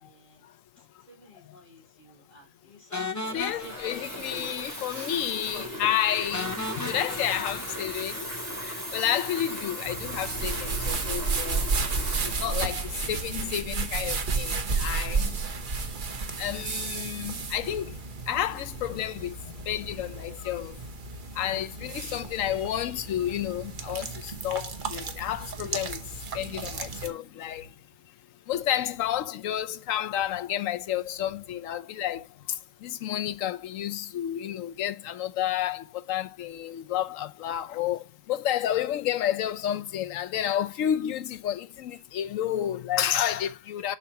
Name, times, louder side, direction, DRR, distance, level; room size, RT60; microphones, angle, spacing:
voice 1, 0.0-0.5 0.8-4.5 5.0-7.3, left 2 dB, 40° left, 3.2 m, -49 dB
sound 1, 2.9-4.8 5.1-5.2 5.6-5.7 6.3-8.6, left 2 dB, 20° left, 0.5 m, -37 dB
voice 2, 3.3-11.7 12.2-15.5 16.0-20.8 21.3-28.1 28.5-44.0, left 11 dB, 80° left, 1.0 m, -31 dB
Water tap faucet / Fill (with liquid), 3.4-13.6, equal, 15° right, 3.3 m, -37 dB
sound 2, 9.8-27.1, right 4 dB, 40° right, 1.1 m, -32 dB
7.1 x 5.8 x 2.8 m
omnidirectional pair, 1.4 m